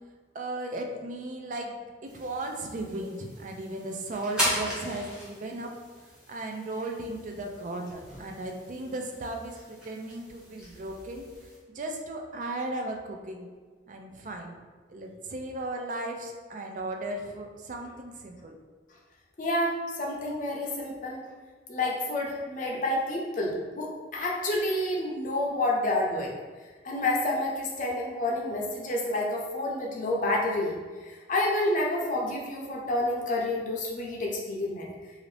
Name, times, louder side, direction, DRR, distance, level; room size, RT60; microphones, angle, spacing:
voice 1, 0.3-5.7 6.3-11.2 11.7-13.5 13.9-14.6 14.9-18.6, right 2 dB, 45° right, 3 dB, 0.4 m, -36 dB
sound 1, 2.1-11.6, equal, 5° right, 0.8 m, -38 dB
voice 2, 19.4-21.2 21.7-26.4 26.8-34.9, left 1 dB, 45° left, -2 dB, 0.6 m, -29 dB
2.7 x 2.5 x 3.2 m, 1.4 s
head